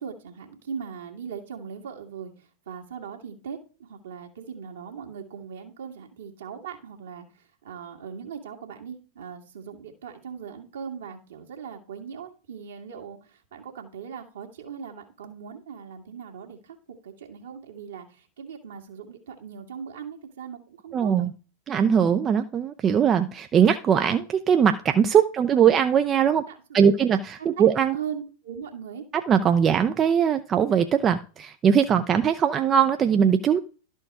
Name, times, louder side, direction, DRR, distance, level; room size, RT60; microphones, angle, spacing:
voice 1, 0.0-16.8 17.0-21.3 25.5-25.7 26.3-27.0 27.9-29.0, right 7 dB, 65° right, 3 dB, 1.9 m, -39 dB
voice 2, 20.9-21.3 21.7-26.4 26.7-28.0 29.3-33.6, right 8 dB, 25° right, 8 dB, 0.5 m, -21 dB
12.0 x 4.5 x 4.7 m, 0.37 s
figure-of-eight pair, 90°, 0 cm